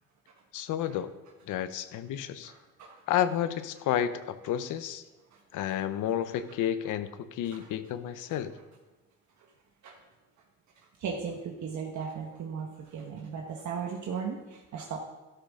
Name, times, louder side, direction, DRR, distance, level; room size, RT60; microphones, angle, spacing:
voice 1, 0.5-1.1 1.5-2.5 3.1-5.0 5.5-8.5, left 10 dB, 85° left, 12 dB, 0.8 m, -31 dB
voice 2, 2.4-3.0 5.3-5.4 7.5-7.6 9.4-9.5 9.8-10.0 10.7-15.0, right 6 dB, 70° right, 0 dB, 1.4 m, -37 dB
12.5 x 11.5 x 3.7 m, 1.1 s
cardioid pair, 90°, 30 cm